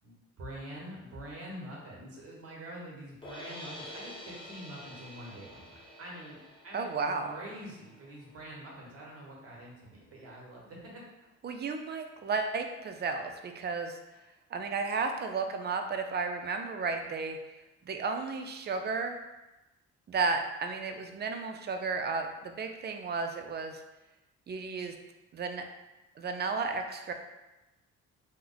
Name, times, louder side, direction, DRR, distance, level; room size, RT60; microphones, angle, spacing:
voice 1, 0.0-6.4 6.6-11.0, right 1 dB, 50° right, -3 dB, 1.2 m, -45 dB
sound 1, 3.2-9.4, left 1 dB, 15° left, 0.6 m, -49 dB
voice 2, 6.7-7.3 11.4-14.0 14.5-17.4 17.9-19.1 20.1-23.8 24.5-24.9 25.3-25.7 26.2-27.1, right 4 dB, 35° right, 5 dB, 0.4 m, -33 dB
3.1 x 2.0 x 3.8 m, 1.0 s
cardioid pair, 90°, 30 cm